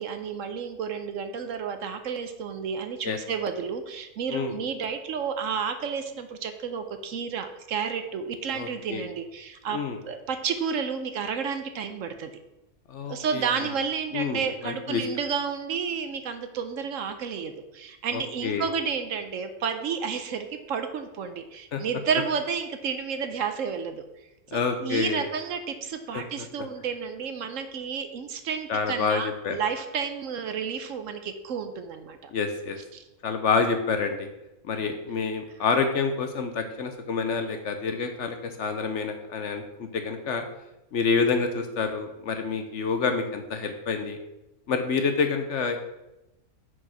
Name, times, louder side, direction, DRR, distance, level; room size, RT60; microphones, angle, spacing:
voice 1, 0.0-9.8 10.1-12.3 13.1-24.0 24.5-32.3 32.9-33.0 34.8-34.9, right 6 dB, 65° right, 7 dB, 1.0 m, -31 dB
voice 2, 8.5-9.0 9.7-10.0 12.9-13.5 14.1-15.0 18.1-18.7 21.7-21.8 24.5-25.3 26.1-26.2 28.7-29.6 32.3-32.8 33.2-34.3 34.7-40.4 40.9-44.2 44.7-45.8, left 5 dB, 60° left, 7 dB, 0.9 m, -28 dB
6.2 x 4.9 x 5.6 m, 0.94 s
omnidirectional pair, 1.6 m